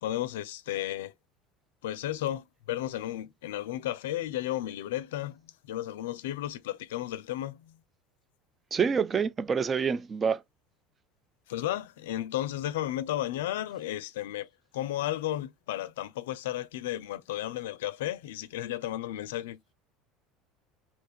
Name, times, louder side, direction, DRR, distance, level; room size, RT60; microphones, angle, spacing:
voice 1, 0.0-1.1 1.8-7.8 11.5-14.5 14.7-19.6, left 13 dB, 80° left, 0.4 m, -33 dB
voice 2, 8.7-10.4, right 6 dB, 30° right, 0.4 m, -27 dB
2.9 x 2.3 x 4.2 m
hypercardioid pair, 80°, 0 cm